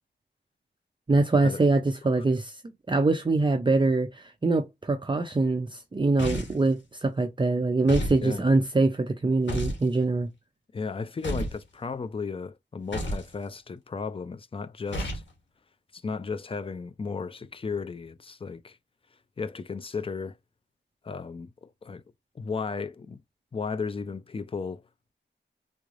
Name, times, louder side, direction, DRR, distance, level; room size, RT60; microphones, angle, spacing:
voice 1, 1.1-2.6 2.9-10.3, right 3 dB, 25° right, 0.5 m, -24 dB
sound 1, 6.2-6.7 7.9-8.2 9.5-9.8 11.2-11.6 12.9-13.3 14.9-15.3, equal, 80° left, 1.6 m, -31 dB
voice 2, 10.7-15.1 15.9-18.8 19.4-20.3 21.0-22.0 22.4-23.2 23.5-24.8, left 5 dB, 30° left, 0.4 m, -34 dB
3.6 x 3.2 x 2.5 m
wide cardioid pair, 90°, 19 cm